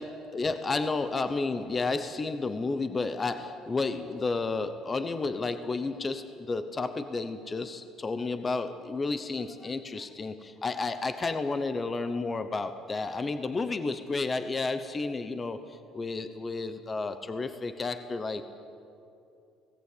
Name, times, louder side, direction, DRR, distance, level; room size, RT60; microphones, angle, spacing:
voice 1, 0.0-18.4, left 3 dB, 20° left, 10 dB, 0.9 m, -31 dB
25.0 x 18.0 x 8.6 m, 2.7 s
cardioid pair, 165°, 0 cm